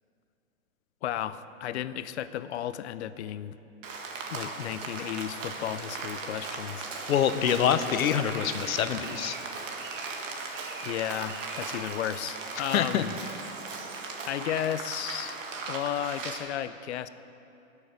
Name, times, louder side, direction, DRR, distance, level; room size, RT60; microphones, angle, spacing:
voice 1, 1.0-3.6 4.3-6.9 10.8-13.1 14.2-15.4 15.7-17.1, left 11 dB, 55° left, 14 dB, 0.5 m, -33 dB
Rain, 3.8-16.4, right 4 dB, 65° right, 1.7 m, -37 dB
voice 2, 7.1-9.4 12.7-13.0, left 9 dB, 85° left, 11 dB, 0.8 m, -25 dB
16.0 x 6.6 x 5.1 m, 2.8 s
hypercardioid pair, 150°, 41 cm